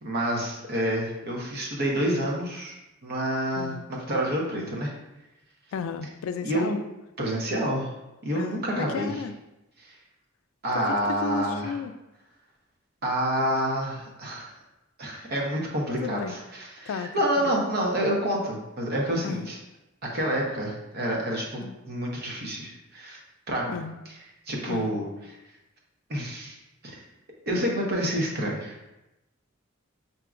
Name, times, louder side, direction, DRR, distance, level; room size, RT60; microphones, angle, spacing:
voice 1, 0.0-2.7 3.0-4.9 6.4-6.8 7.2-7.9 8.2-9.1 9.8-10.0 10.6-11.7 13.0-14.5 15.0-19.6 20.0-23.2 23.5-23.8 24.5-25.1 26.1-26.6 26.8-27.0 27.5-28.8, equal, 50° right, -1 dB, 0.9 m, -28 dB
voice 2, 3.6-3.9 5.7-6.8 8.3-9.3 10.7-11.9 16.0-16.4 16.9-17.6 19.2-19.5 21.6-21.7 23.7-24.0 24.7-25.0, left 5 dB, 75° left, 11 dB, 0.3 m, -34 dB
5.8 x 2.8 x 2.4 m, 0.95 s
head